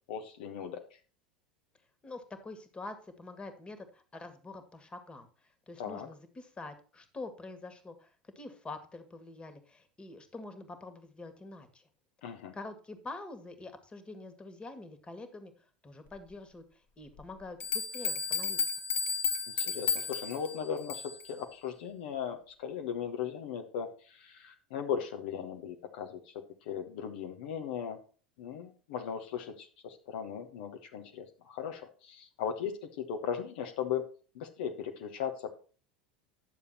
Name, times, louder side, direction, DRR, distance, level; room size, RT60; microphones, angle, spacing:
voice 1, 0.1-0.8 5.8-6.1 12.2-12.5 19.6-28.0 28.4-34.1 34.3-35.5, left 8 dB, 65° left, 4 dB, 1.4 m, -38 dB
voice 2, 2.0-11.8 12.5-18.6, left 2 dB, 20° left, 9 dB, 2.0 m, -46 dB
sound 1, 17.2-17.3 17.6-21.3, left 5 dB, 45° left, 1.8 m, -33 dB
11.0 x 7.0 x 4.3 m, 0.38 s
hypercardioid pair, 80°, 5 cm